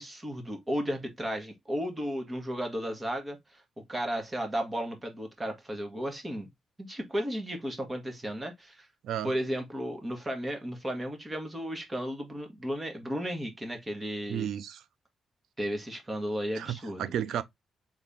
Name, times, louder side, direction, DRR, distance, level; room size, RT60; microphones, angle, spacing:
voice 1, 0.0-3.6 3.9-6.5 6.8-8.9 9.2-14.5 15.6-17.0, equal, 20° right, 1.5 m, -34 dB
voice 2, 9.0-9.3 14.3-14.8 16.5-17.4, right 10 dB, 85° right, 0.5 m, -33 dB
4.2 x 3.5 x 3.6 m
cardioid pair, 105°, 0 cm